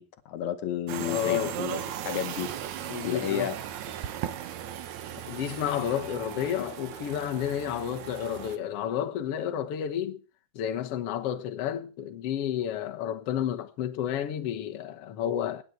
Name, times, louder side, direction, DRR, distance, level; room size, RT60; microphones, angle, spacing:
voice 1, 0.0-2.5 3.0-3.6, left 10 dB, 70° left, 1.8 m, -32 dB
sound 1, 0.9-8.6, right 10 dB, 70° right, 1.8 m, -37 dB
voice 2, 1.0-1.5 2.9-3.5 5.2-10.2 10.5-15.6, left 10 dB, 90° left, 1.3 m, -31 dB
25.5 x 9.7 x 4.5 m
omnidirectional pair, 4.6 m